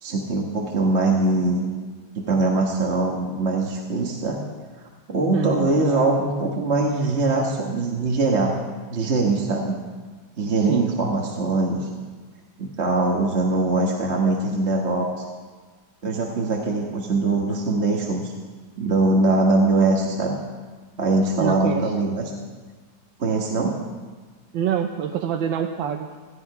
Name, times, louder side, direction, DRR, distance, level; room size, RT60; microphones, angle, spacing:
voice 1, 0.0-1.7 2.1-4.4 5.1-8.6 8.9-9.8 10.4-11.9 12.6-15.1 16.0-18.3 18.8-20.4 21.0-22.2 23.2-23.8, right 3 dB, 40° right, -1 dB, 1.5 m, -22 dB
voice 2, 5.3-5.7 10.6-10.9 21.4-21.9 24.5-26.2, right 8 dB, 85° right, 3 dB, 1.6 m, -26 dB
17.0 x 15.5 x 4.8 m, 1.4 s
omnidirectional pair, 2.1 m